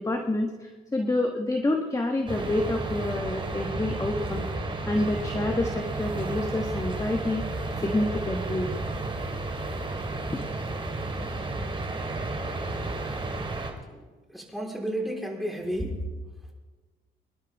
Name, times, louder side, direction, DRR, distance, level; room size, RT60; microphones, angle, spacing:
voice 1, 0.0-4.5 4.9-8.7 10.3-10.4, left 1 dB, 15° left, 3 dB, 1.3 m, -28 dB
sound 1, 2.3-13.7, right 2 dB, 25° right, 2.8 m, -32 dB
voice 2, 14.3-16.0, equal, ahead, -2 dB, 4.1 m, -31 dB
24.5 x 11.0 x 3.6 m, 1.3 s
cardioid pair, 90°, 20 cm